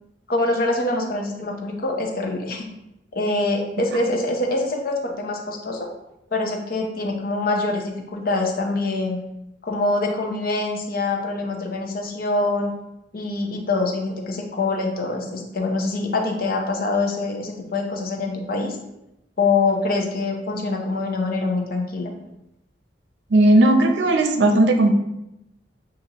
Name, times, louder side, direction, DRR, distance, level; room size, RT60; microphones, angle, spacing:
voice 1, 0.3-2.6 3.1-5.9 6.3-9.2 9.6-12.7 13.1-18.8 19.4-22.1, left 2 dB, 55° left, 2 dB, 0.7 m, -24 dB
voice 2, 23.3-24.9, right 1 dB, 75° right, 4 dB, 0.6 m, -16 dB
6.8 x 2.5 x 2.9 m, 0.89 s
head